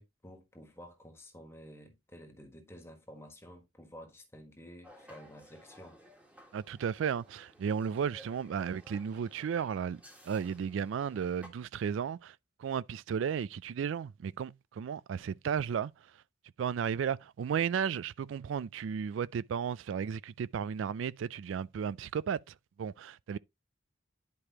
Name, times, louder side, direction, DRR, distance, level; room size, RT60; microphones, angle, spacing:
voice 1, 0.0-6.0, equal, 15° left, 1.4 m, -51 dB
sound 1, 4.8-11.5, equal, 10° right, 1.6 m, -57 dB
voice 2, 6.5-15.9 16.6-22.4 22.8-23.4, right 7 dB, 90° right, 0.3 m, -34 dB
10.5 x 4.9 x 2.9 m
head